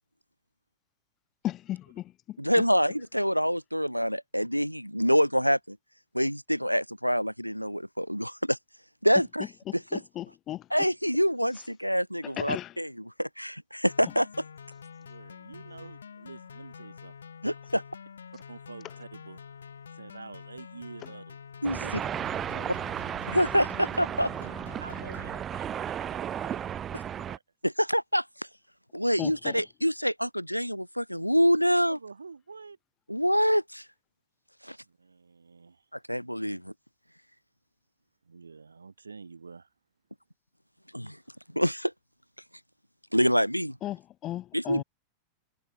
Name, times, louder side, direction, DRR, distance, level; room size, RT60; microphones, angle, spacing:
voice 1, 1.4-2.4 9.7-10.7 12.4-12.7 29.2-29.6 43.8-44.8, left 13 dB, 35° left, 0.6 m, -35 dB
voice 2, 2.4-5.8 6.1-8.6 9.0-9.5 9.7-10.0 10.7-14.3 17.4-17.8 21.6-21.8 23.3-24.3 27.6-28.2 28.9-32.0 33.1-33.8 34.6-34.8 36.1-36.7 40.9-41.2 41.5-41.9 43.1-43.8 44.5-44.8, equal, 90° left, 0.5 m, -26 dB
sound 1, 13.9-25.4, left 7 dB, 70° left, 2.5 m, -47 dB
voice 3, 15.0-17.1 18.5-19.4 19.9-21.4 21.7-21.9 22.5-22.9 24.8-27.0 27.3-27.4 31.9-32.8 34.8-35.9 38.2-39.7, right 4 dB, 75° right, 2.0 m, -47 dB
sound 2, 21.6-27.4, right 9 dB, 25° right, 1.1 m, -34 dB
figure-of-eight pair, 90°, 0 cm